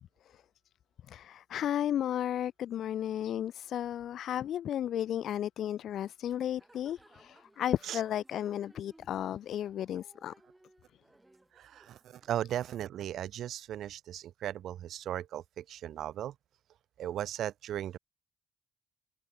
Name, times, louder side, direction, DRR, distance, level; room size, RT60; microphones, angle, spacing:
voice 1, 1.1-10.3, left 10 dB, 70° left, 0.8 m, -34 dB
sound 1, 6.6-12.4, right 2 dB, 15° right, 7.2 m, -62 dB
voice 2, 11.6-12.0 12.3-16.3 17.0-18.0, right 11 dB, 75° right, 0.9 m, -37 dB
cardioid pair, 90°, 0 cm